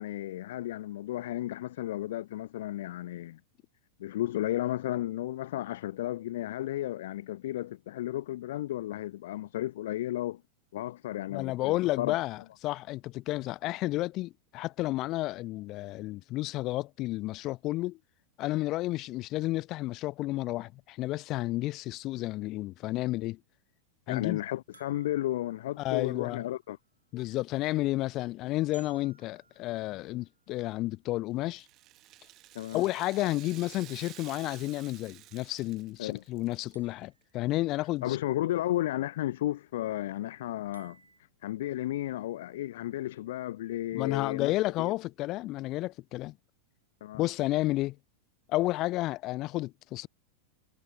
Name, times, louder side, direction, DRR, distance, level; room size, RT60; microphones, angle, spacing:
voice 1, 0.0-3.4 4.0-10.4 10.7-12.1 24.1-26.8 32.5-32.8 36.0-36.2 38.0-41.0 41.4-44.9 47.0-47.3, left 14 dB, 55° left, 0.5 m, -33 dB
voice 2, 11.3-18.0 18.4-23.4 24.1-24.4 25.8-26.4 27.1-31.7 32.7-38.2 43.9-46.4 47.2-48.0 48.5-50.1, left 18 dB, 40° left, 0.8 m, -31 dB
sound 1, 24.7-26.7 28.7-30.5 32.7-34.1 36.7-38.0 40.7-41.2, right 4 dB, 75° right, 5.6 m, -61 dB
Rattle (instrument), 31.5-36.7 37.0-37.1 38.0-38.1, right 16 dB, 35° right, 1.4 m, -51 dB
figure-of-eight pair, 90°, 0 cm